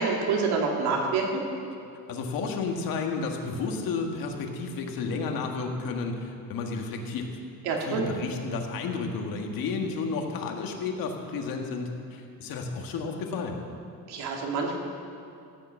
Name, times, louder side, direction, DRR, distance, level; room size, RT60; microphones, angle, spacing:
voice 1, 0.0-1.4 7.6-8.1 14.1-14.8, right 4 dB, 85° right, 0 dB, 2.6 m, -27 dB
voice 2, 2.1-7.3 7.8-13.6, left 4 dB, 65° left, 2 dB, 1.7 m, -32 dB
15.0 x 8.8 x 6.9 m, 2.6 s
cardioid pair, 175°, 38 cm